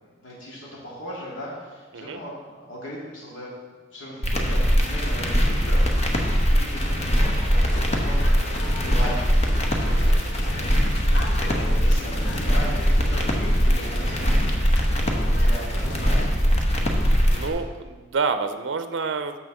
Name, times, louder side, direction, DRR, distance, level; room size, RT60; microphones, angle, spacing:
voice 1, 0.2-3.5 3.9-6.2 6.5-9.4 9.9-11.1 11.5-16.4, equal, 80° left, -5 dB, 2.4 m, -38 dB
sound 1, 4.2-17.5, equal, 35° left, 1.0 m, -21 dB
sound 2, 7.7-16.3, left 2 dB, 60° left, 1.0 m, -38 dB
voice 2, 9.8-10.2 17.3-19.4, right 4 dB, 65° right, 9 dB, 0.5 m, -28 dB
6.3 x 6.2 x 7.0 m, 1.4 s
head